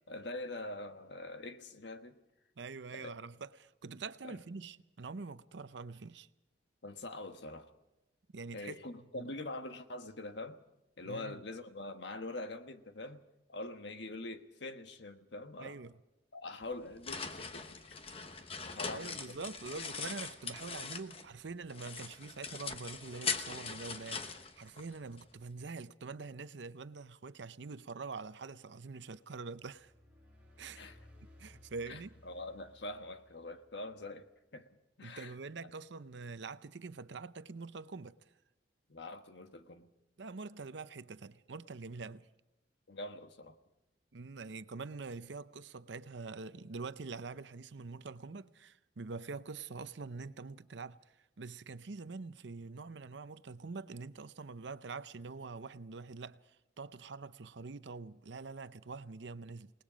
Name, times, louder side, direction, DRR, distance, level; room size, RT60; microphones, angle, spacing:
voice 1, 0.1-2.2 2.9-3.2 4.2-4.4 6.8-7.7 8.5-10.6 11.0-13.2 13.5-15.8 16.3-17.8 18.1-18.3 18.7-19.4 30.7-31.0 31.9-35.3 38.9-39.9 42.9-43.6, left 2 dB, 70° left, 1.3 m, -44 dB
voice 2, 2.6-6.3 8.3-9.3 11.0-11.4 15.6-15.9 18.9-29.9 30.6-30.8 31.4-32.1 35.0-38.1 40.2-42.3 44.1-51.0 51.4-56.4 56.8-59.7, right 4 dB, 70° right, 0.7 m, -45 dB
sound 1, 16.6-21.4 21.7-25.2, left 5 dB, 30° left, 1.0 m, -41 dB
sound 2, 29.5-34.2, left 1 dB, 5° right, 6.1 m, -60 dB
28.0 x 19.5 x 5.1 m
head